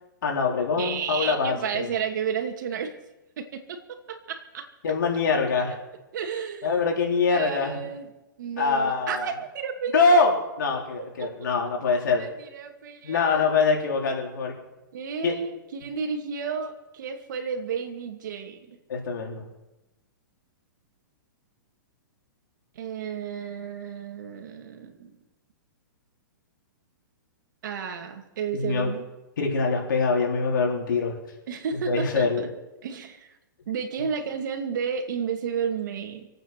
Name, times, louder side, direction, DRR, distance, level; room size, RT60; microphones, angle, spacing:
voice 1, 0.2-1.9 4.8-5.7 6.6-7.8 8.6-9.3 9.9-12.3 13.0-14.6 15.2-15.3 18.9-19.4 28.5-28.9 29.4-31.2 31.9-32.4, left 4 dB, 75° left, 0 dB, 4.0 m, -24 dB
voice 2, 0.8-3.0 3.4-4.7 5.7-5.8 6.1-6.9 7.3-8.1 8.4-10.3 11.2-11.5 12.1-13.6 14.9-18.8 22.7-25.2 27.6-29.0 31.5-32.3 32.8-33.3 33.7-36.3, right 6 dB, 65° right, 5 dB, 2.5 m, -32 dB
26.0 x 9.0 x 6.0 m, 1.0 s
hypercardioid pair, 145°, 11 cm